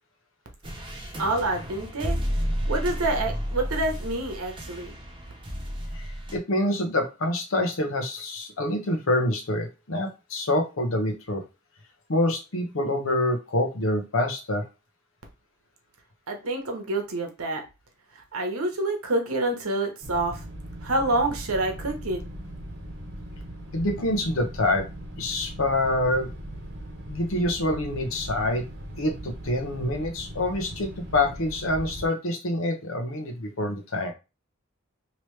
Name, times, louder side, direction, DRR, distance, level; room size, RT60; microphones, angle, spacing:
sound 1, 0.6-6.4, equal, 25° right, 0.6 m, -32 dB
voice 1, 1.2-2.2 2.7-4.9 16.3-17.6 18.3-20.4 20.8-22.2, right 2 dB, 85° right, 3 dB, 0.9 m, -27 dB
voice 2, 6.0-11.4 12.1-14.6 23.7-24.9 25.2-26.3 27.1-28.6 29.0-34.1, left 1 dB, 70° left, 4 dB, 0.9 m, -26 dB
sound 2, 20.0-32.1, equal, 55° right, 0.9 m, -39 dB
3.0 x 2.9 x 3.2 m, 0.28 s
head